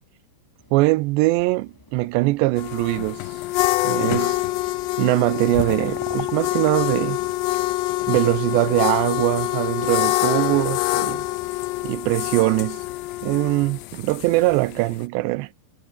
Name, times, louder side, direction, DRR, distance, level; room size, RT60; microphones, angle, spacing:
sound 1, 0.6-12.2, left 1 dB, 5° left, 2.5 m, -45 dB
voice 1, 0.7-3.2 3.8-4.4 5.0-7.2 8.1-11.3 11.8-12.8 13.2-15.5, right 20 dB, 90° right, 2.9 m, -22 dB
sound 2, 2.6-15.0, left 18 dB, 85° left, 3.1 m, -26 dB
omnidirectional pair, 4.9 m